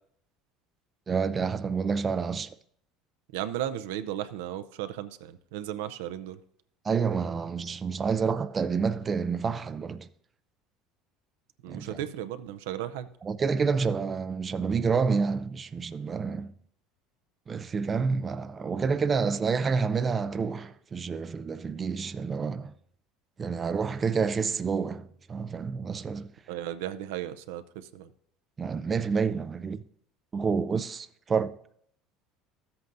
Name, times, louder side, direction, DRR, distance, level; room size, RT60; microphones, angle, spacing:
voice 1, 1.1-2.5 6.8-10.1 11.7-12.0 13.2-16.5 17.5-22.7 23.4-26.3 28.6-29.8 30.3-31.5, right 5 dB, 30° right, 0.4 m, -28 dB
voice 2, 3.3-6.4 11.6-13.1 26.5-28.1, right 11 dB, 85° right, 0.5 m, -35 dB
13.5 x 7.9 x 2.6 m
supercardioid pair, 95°, 0 cm